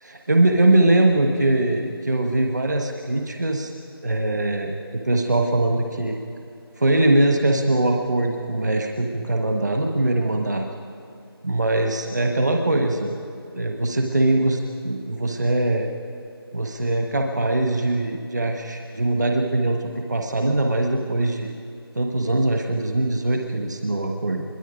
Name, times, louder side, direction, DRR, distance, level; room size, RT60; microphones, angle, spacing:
voice 1, 0.0-3.7 4.0-6.2 6.8-10.6 11.4-13.1 13.5-15.9 16.5-21.5 21.9-24.4, right 2 dB, 45° right, 3 dB, 1.3 m, -22 dB
25.5 x 22.5 x 5.1 m, 2.5 s
figure-of-eight pair, 175°, 13 cm